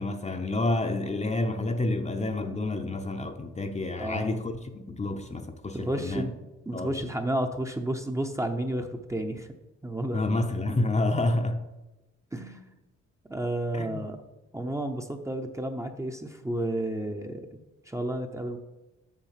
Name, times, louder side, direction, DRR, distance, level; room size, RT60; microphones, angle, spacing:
voice 1, 0.0-6.3 6.7-7.0 10.1-11.6 13.7-13.9, left 2 dB, 25° left, 0.7 m, -29 dB
voice 2, 4.0-4.4 5.7-9.5 9.8-10.2 12.3-12.7 13.3-14.2 14.5-18.6, right 1 dB, 10° right, 0.7 m, -32 dB
7.3 x 6.3 x 5.7 m
cardioid pair, 90°, 30 cm